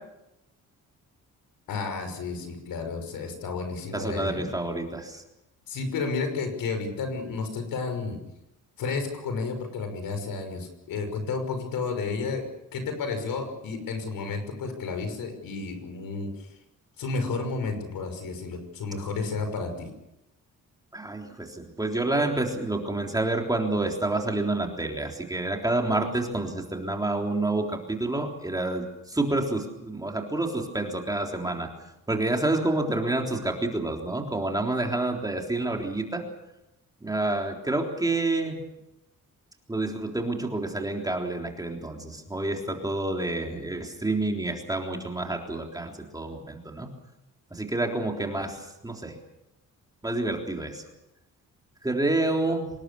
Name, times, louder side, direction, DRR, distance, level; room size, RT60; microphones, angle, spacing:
voice 1, 1.7-4.5 5.7-8.2 8.8-12.4 12.7-16.5 17.0-19.9, left 4 dB, 80° left, 7 dB, 5.9 m, -31 dB
voice 2, 3.9-5.2 20.9-31.7 32.1-36.2 37.0-38.6 39.7-46.9 47.5-49.2 50.0-50.8 51.8-52.7, right 2 dB, 10° right, 2 dB, 3.6 m, -28 dB
26.0 x 20.0 x 7.0 m, 0.89 s
cardioid pair, 145°, 34 cm